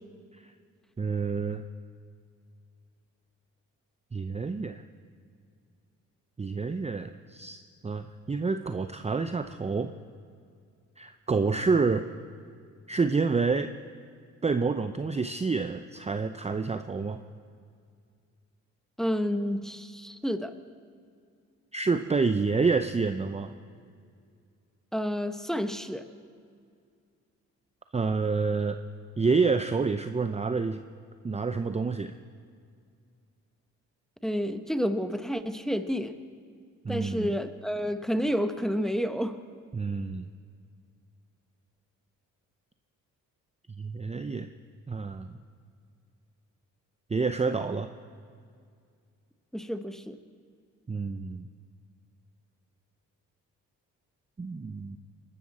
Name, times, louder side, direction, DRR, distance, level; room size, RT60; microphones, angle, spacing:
voice 1, 1.0-1.6 4.1-4.8 6.4-9.9 11.0-12.1 12.9-13.7 14.4-17.2 21.7-23.5 27.9-28.8 29.2-30.8 31.2-32.1 36.8-37.3 39.7-40.3 43.8-44.5 44.9-45.4 47.1-47.9 50.9-51.5 54.4-55.0, right 4 dB, 20° right, 9 dB, 0.6 m, -28 dB
voice 2, 19.0-20.5 24.9-26.1 34.2-36.1 36.9-39.4 49.5-50.2, equal, ahead, 9 dB, 1.0 m, -30 dB
21.5 x 12.5 x 4.2 m, 2.2 s
supercardioid pair, 55°, 36 cm